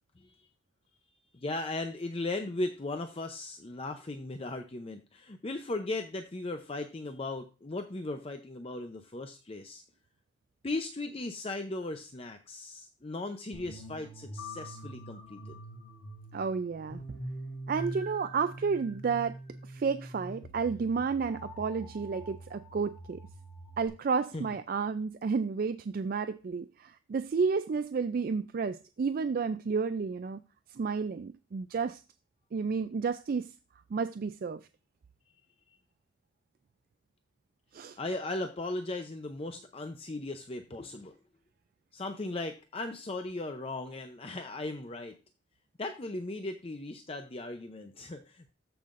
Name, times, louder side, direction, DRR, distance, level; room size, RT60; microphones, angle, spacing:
voice 1, 0.2-0.5 1.3-9.8 10.6-15.6 24.3-24.4 38.0-41.2 41.9-45.2 45.8-48.5, left 2 dB, 30° left, 0.6 m, -37 dB
sound 1, 13.5-23.9, right 1 dB, 85° left, 2.8 m, -44 dB
voice 2, 16.3-17.2 17.7-23.2 23.8-30.4 30.7-32.0 32.5-33.5 33.9-34.6 37.7-38.0, right 5 dB, 50° right, 0.3 m, -31 dB
14.0 x 5.6 x 2.5 m
head